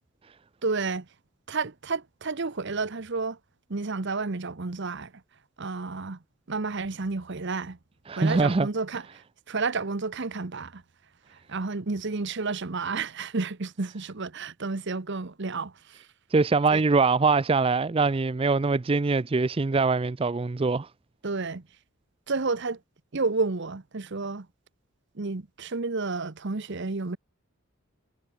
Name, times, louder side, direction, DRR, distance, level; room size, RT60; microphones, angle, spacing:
voice 1, 0.6-1.1 1.5-3.4 3.7-5.1 5.6-6.2 6.5-7.8 8.2-9.1 9.5-10.8 11.5-16.0 16.7-16.8 21.2-21.6 22.3-22.8 23.1-24.5 25.1-27.2, right 3 dB, 55° right, 0.9 m, -31 dB
voice 2, 8.1-8.7 16.3-20.9, right 4 dB, 25° right, 0.4 m, -23 dB
head